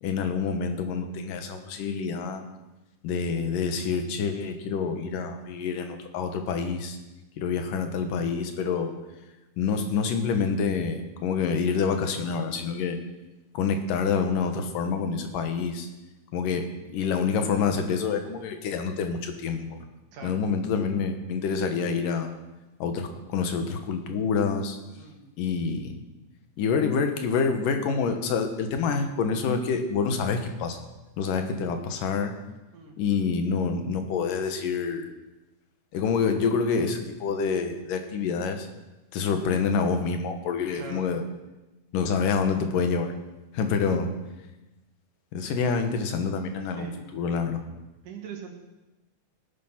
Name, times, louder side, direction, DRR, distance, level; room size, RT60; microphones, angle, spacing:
voice 1, 0.0-2.4 3.0-7.0 7.4-8.9 9.6-13.0 13.5-15.9 16.3-19.8 20.2-22.3 22.8-24.8 25.4-26.0 26.6-30.8 31.2-32.4 33.0-35.1 35.9-38.7 39.1-41.2 41.9-43.1 43.5-44.1 45.3-47.6, left 5 dB, 90° left, 6 dB, 2.9 m, -27 dB
voice 2, 40.7-41.1 46.7-47.0 48.0-48.5, right 5 dB, 75° right, 2 dB, 3.5 m, -42 dB
16.5 x 9.2 x 5.8 m, 1.1 s
omnidirectional pair, 3.7 m